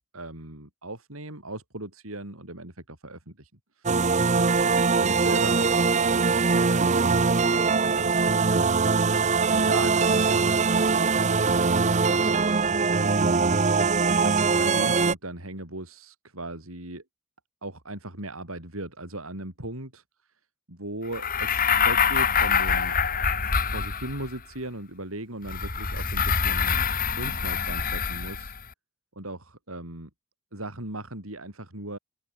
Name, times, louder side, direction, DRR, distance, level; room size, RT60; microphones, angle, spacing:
voice 1, 0.0-4.7 5.0-8.5 9.5-11.3 12.1-13.5 14.2-17.0 17.6-20.0 20.7-23.0 23.6-26.8 27.2-28.6 29.2-30.1 30.5-32.0, right 2 dB, 90° right, 7.4 m, -38 dB
sound 1, 3.9-15.1, right 4 dB, 35° right, 0.7 m, -22 dB
sound 2, 21.1-24.4 25.5-28.6, left 6 dB, 45° left, 3.6 m, -25 dB
open air
head